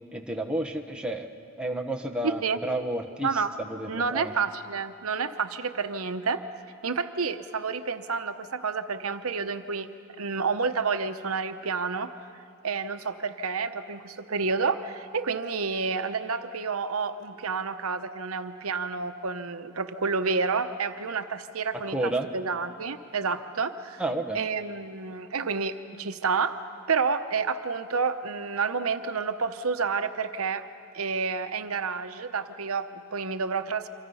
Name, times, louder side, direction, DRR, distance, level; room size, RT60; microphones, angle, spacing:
voice 1, 0.1-1.3 1.6-3.3 3.6-4.3 21.9-22.3 24.0-24.4, right 1 dB, 5° right, 3 dB, 1.2 m, -31 dB
voice 2, 2.2-2.6 3.2-3.5 3.9-6.4 6.8-9.9 10.2-12.1 12.6-24.0 24.3-26.6 26.9-30.6 30.9-33.9, right 5 dB, 85° right, 9 dB, 0.9 m, -29 dB
28.0 x 25.0 x 5.6 m, 2.3 s
head